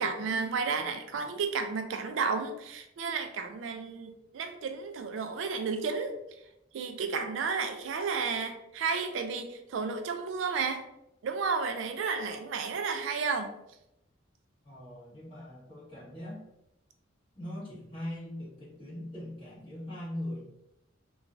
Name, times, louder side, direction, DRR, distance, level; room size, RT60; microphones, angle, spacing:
voice 1, 0.0-6.1 6.7-10.8 11.2-13.5, right 5 dB, 70° right, 6 dB, 0.3 m, -32 dB
voice 2, 14.6-16.4 17.3-20.4, left 1 dB, 25° left, -9 dB, 1.4 m, -41 dB
3.0 x 2.3 x 2.5 m, 0.83 s
head